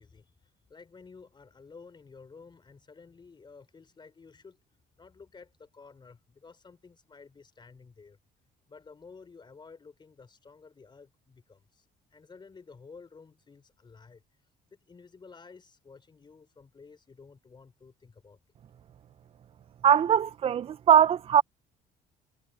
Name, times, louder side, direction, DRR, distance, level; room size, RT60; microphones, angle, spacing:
voice 1, 0.0-4.6 5.0-8.2 8.7-14.2 14.7-18.4, left 4 dB, 25° left, 3.7 m, -52 dB
voice 2, 19.8-21.4, right 9 dB, 35° right, 0.4 m, -21 dB
cardioid pair, 110°, 17 cm